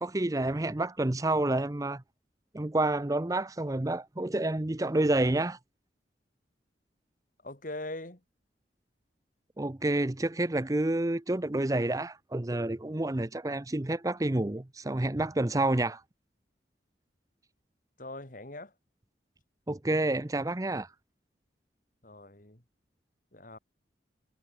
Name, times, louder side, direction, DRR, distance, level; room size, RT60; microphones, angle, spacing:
voice 1, 0.0-2.0 2.5-5.6 9.6-16.0 19.7-20.9, right 2 dB, 20° right, 0.7 m, -29 dB
voice 2, 7.4-8.2 18.0-18.7 22.0-22.6 23.3-23.6, left 2 dB, 50° left, 3.2 m, -41 dB
head